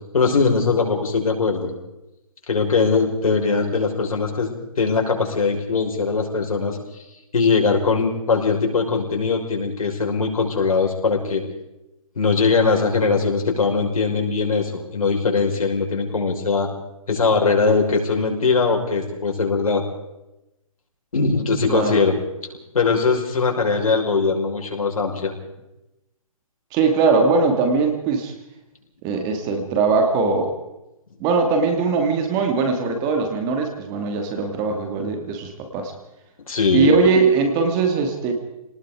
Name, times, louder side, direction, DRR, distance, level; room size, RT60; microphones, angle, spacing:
voice 1, 0.1-1.7 2.5-4.5 4.8-6.8 7.3-11.4 12.2-16.7 17.1-19.8 21.1-22.2 22.7-25.3 36.5-37.0, left 4 dB, 75° left, 1 dB, 5.7 m, -20 dB
voice 2, 26.7-28.3 29.0-30.5 31.2-35.9 36.7-38.3, right 4 dB, 20° right, 5 dB, 2.5 m, -20 dB
27.5 x 19.5 x 5.0 m, 0.92 s
hypercardioid pair, 155°, 18 cm